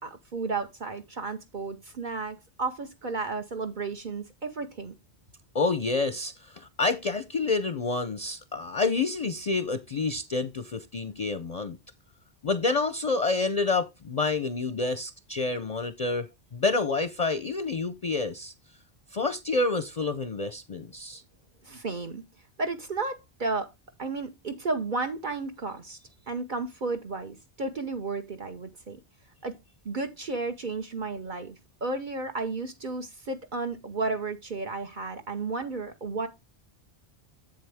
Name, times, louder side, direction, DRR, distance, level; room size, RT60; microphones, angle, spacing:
voice 1, 0.0-4.9 21.6-22.2 22.6-23.7 24.0-26.0 26.3-29.0 29.4-29.5 29.8-31.6 31.8-36.3, right 3 dB, 50° right, 1.0 m, -33 dB
voice 2, 5.5-11.8 12.4-16.3 16.5-18.5 19.1-21.2, left 3 dB, 45° left, 0.6 m, -28 dB
7.7 x 7.6 x 3.4 m
omnidirectional pair, 1.1 m